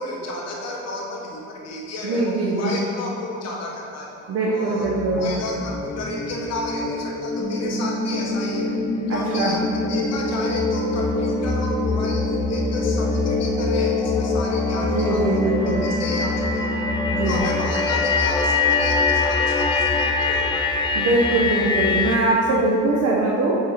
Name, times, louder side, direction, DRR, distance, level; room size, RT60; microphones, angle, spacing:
voice 1, 0.0-4.1 4.5-4.9 5.2-8.7 9.1-16.7 17.2-20.7, left 2 dB, 55° left, -2 dB, 1.1 m, -32 dB
voice 2, 2.0-2.7 4.3-5.3 9.1-9.6 14.9-15.8 17.1-17.4 20.9-23.6, right 2 dB, 55° right, -4 dB, 0.8 m, -22 dB
sound 1, 4.8-22.2, left 4 dB, 15° left, 0.3 m, -24 dB
sound 2, 7.4-17.4, equal, 15° right, 1.0 m, -29 dB
4.8 x 4.8 x 5.6 m, 2.6 s
cardioid pair, 150°, 30 cm